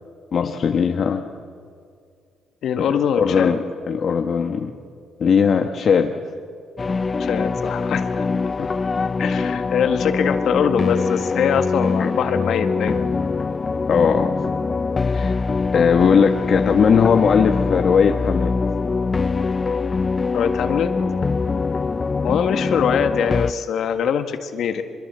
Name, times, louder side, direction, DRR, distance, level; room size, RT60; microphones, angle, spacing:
voice 1, 0.3-1.2 2.8-2.9 3.1-3.6 3.9-4.7 5.2-6.1 8.6-8.7 12.0-12.1 13.9-14.4 15.1-15.3 15.7-18.5, left 6 dB, 55° left, 5 dB, 1.1 m, -18 dB
voice 2, 2.6-3.6 7.2-8.3 9.2-13.2 20.3-20.9 22.2-24.8, left 7 dB, 70° left, 8 dB, 1.7 m, -23 dB
sound 1, 6.8-23.5, left 4 dB, 30° left, 0.5 m, -23 dB
24.0 x 22.0 x 7.7 m, 2.3 s
cardioid pair, 90°, 0 cm